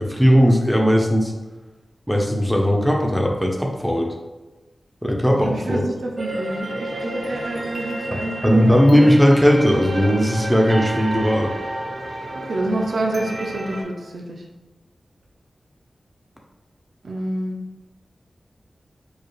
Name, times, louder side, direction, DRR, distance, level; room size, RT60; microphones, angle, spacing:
voice 1, 0.0-1.3 2.1-4.1 5.0-5.8 8.1-11.5, equal, ahead, 0 dB, 0.6 m, -17 dB
voice 2, 5.4-8.8 12.5-14.4 17.0-17.6, right 1 dB, 80° right, 1 dB, 0.6 m, -27 dB
sound 1, 6.2-13.8, right 1 dB, 40° right, 0.6 m, -31 dB
4.6 x 2.4 x 3.1 m, 1.1 s
wide cardioid pair, 95°, 0 cm